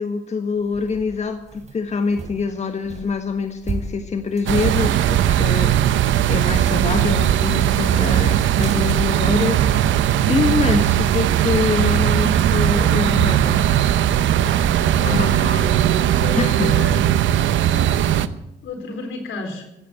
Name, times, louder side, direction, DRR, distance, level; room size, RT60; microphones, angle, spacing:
voice 1, 0.0-5.9 6.3-9.7 10.3-13.6 15.0-15.8 16.4-16.7, left 4 dB, 35° left, 7 dB, 1.5 m, -24 dB
sound 1, 0.5-10.3 10.7-11.1 11.5-11.7, right 3 dB, 35° right, 3.3 m, -35 dB
sound 2, 4.5-18.3, right 11 dB, 75° right, 0.8 m, -18 dB
voice 2, 14.4-17.1 18.6-19.7, left 3 dB, 75° left, 3 dB, 4.3 m, -33 dB
16.0 x 9.3 x 9.0 m, 0.85 s
cardioid pair, 90°, 20 cm